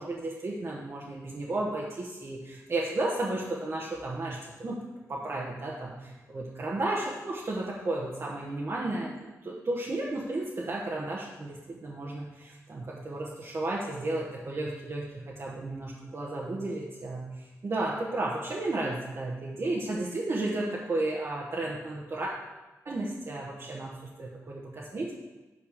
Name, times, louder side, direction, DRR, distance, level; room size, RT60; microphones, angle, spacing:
voice 1, 0.0-4.8 5.1-22.3 22.8-23.9 24.2-25.1, right 2 dB, 45° right, -4 dB, 1.3 m, -33 dB
8.7 x 4.5 x 6.6 m, 1.1 s
wide cardioid pair, 105°, 6 cm